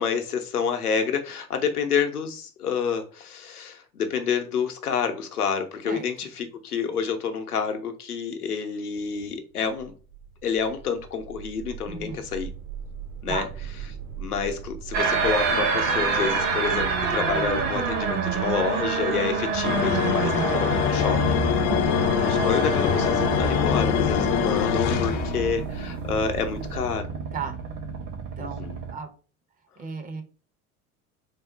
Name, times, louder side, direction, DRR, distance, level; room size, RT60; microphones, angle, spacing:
voice 1, 0.0-9.9 10.4-12.5 13.2-13.4 14.2-21.4 22.2-27.1 28.4-28.8, left 6 dB, 80° left, 0.7 m, -28 dB
sound 1, 9.5-26.9, right 6 dB, 70° right, 1.1 m, -39 dB
voice 2, 11.9-12.2 13.3-13.5 21.5-22.0 27.3-27.6 28.4-29.1 29.8-30.2, right 4 dB, 20° right, 0.5 m, -34 dB
sound 2, 14.9-28.9, right 5 dB, 45° right, 0.9 m, -28 dB
sound 3, 19.6-25.6, left 8 dB, 40° left, 0.4 m, -24 dB
3.7 x 2.1 x 3.8 m
figure-of-eight pair, 70°, 44 cm